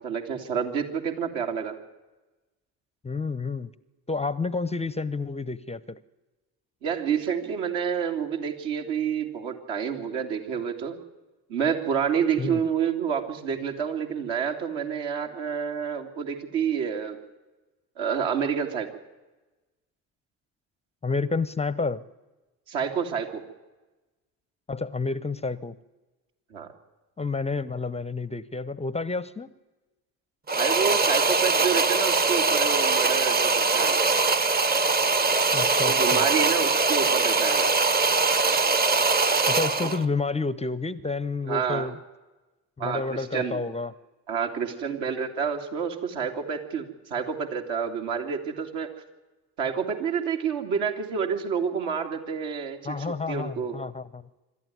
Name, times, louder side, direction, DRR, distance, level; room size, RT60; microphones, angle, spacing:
voice 1, 0.0-1.7 6.8-11.0 11.5-17.2 18.0-18.9 22.7-23.4 26.5-26.7 30.6-34.0 35.8-37.7 41.4-41.9 42.8-43.6 44.3-48.9 49.6-53.8, right 7 dB, 60° right, 2.8 m, -28 dB
voice 2, 3.0-3.7 4.1-6.0 12.4-12.6 21.0-22.0 24.7-25.7 27.2-29.5 35.5-36.3 39.5-42.0 42.8-43.9 52.8-54.2, left 3 dB, 15° left, 0.7 m, -30 dB
sound 1, 30.5-40.1, right 4 dB, 20° right, 1.0 m, -22 dB
26.0 x 12.5 x 9.3 m
figure-of-eight pair, 60°, 49 cm